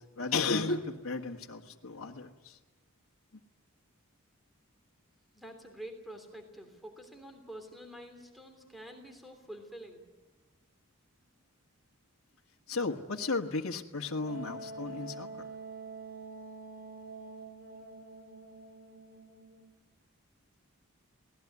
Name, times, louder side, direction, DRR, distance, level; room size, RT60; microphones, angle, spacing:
voice 1, 0.0-2.6 12.7-15.5, left 3 dB, 75° left, 1 dB, 1.7 m, -34 dB
voice 2, 5.3-10.0, right 1 dB, ahead, 5 dB, 3.3 m, -47 dB
Wind instrument woodwind instrument, 14.2-19.7, right 2 dB, 45° right, 4.6 m, -46 dB
28.0 x 19.0 x 9.6 m, 1.2 s
head